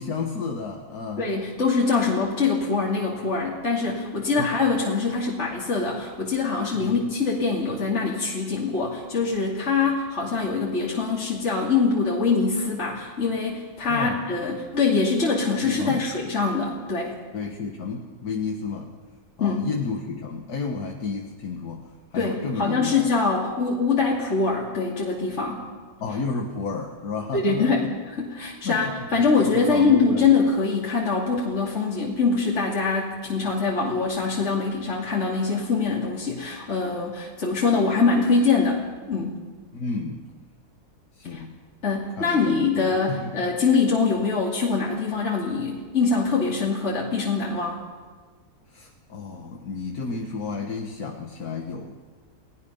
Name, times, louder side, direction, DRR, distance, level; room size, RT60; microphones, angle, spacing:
voice 1, 0.0-1.3 4.4-4.5 6.7-7.0 13.9-14.2 15.6-16.1 17.3-18.9 19.4-23.1 26.0-27.9 28.6-30.3 39.7-40.3 41.2-41.6 42.2-43.3 48.7-51.9, left 4 dB, 75° left, 1 dB, 1.9 m, -32 dB
voice 2, 1.2-17.2 19.4-19.7 22.1-25.6 27.3-39.4 41.3-41.4 41.8-47.8, left 4 dB, 45° left, -4 dB, 2.8 m, -24 dB
30.0 x 19.0 x 5.5 m, 1.4 s
omnidirectional pair, 1.6 m